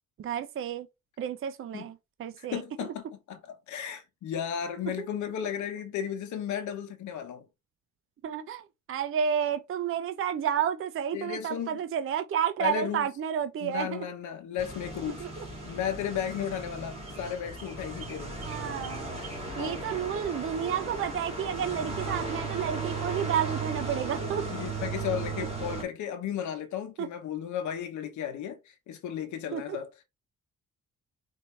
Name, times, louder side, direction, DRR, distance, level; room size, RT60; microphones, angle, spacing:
voice 1, 0.2-0.9 1.2-2.6 8.2-14.1 15.1-15.4 18.4-19.2 19.6-24.5 27.0-27.1 29.5-29.8, right 8 dB, 45° right, 0.5 m, -31 dB
voice 2, 2.4-7.5 11.1-11.8 12.6-13.1 13.6-18.4 19.6-19.9 24.5-29.9, left 9 dB, 75° left, 0.9 m, -34 dB
sound 1, 14.6-25.8, right 3 dB, 20° right, 2.3 m, -36 dB
4.5 x 2.7 x 3.1 m
cardioid pair, 90°, 30 cm